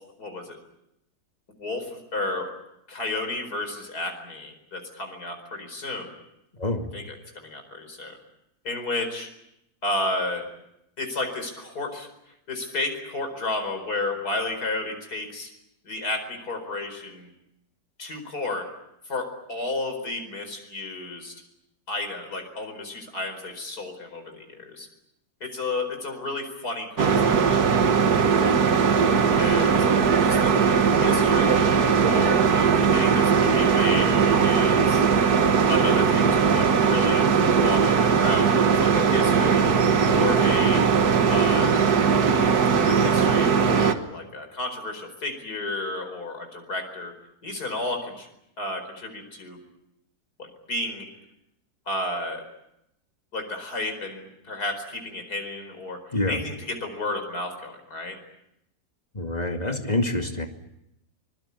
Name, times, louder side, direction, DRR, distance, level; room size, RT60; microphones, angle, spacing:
voice 1, 0.2-0.6 1.6-2.5 2.9-6.1 6.9-8.2 8.6-9.3 9.8-10.5 11.0-12.1 12.5-15.5 15.8-17.3 18.0-18.7 19.1-21.4 21.9-24.9 25.4-28.7 29.4-29.9 30.2-34.1 34.4-35.0 35.7-39.7 40.1-40.8 41.3-41.8 42.8-47.1 47.4-48.3 48.6-49.6 50.4-51.1 51.9-52.4 53.3-58.2, left 2 dB, 80° left, 5 dB, 5.2 m, -32 dB
sound 1, 27.0-43.9, right 6 dB, 75° right, 1.9 m, -20 dB
voice 2, 59.2-60.5, left 2 dB, 25° left, 4 dB, 2.4 m, -26 dB
24.5 x 22.0 x 8.4 m, 0.84 s
omnidirectional pair, 1.6 m